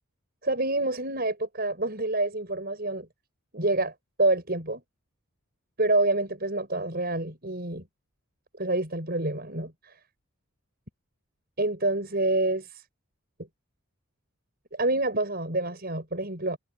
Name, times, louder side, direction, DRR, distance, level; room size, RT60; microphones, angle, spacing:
voice 1, 0.4-3.1 3.5-4.8 5.8-7.8 8.6-9.9 11.6-12.8 14.7-16.6, right 2 dB, 45° right, 6.4 m, -27 dB
head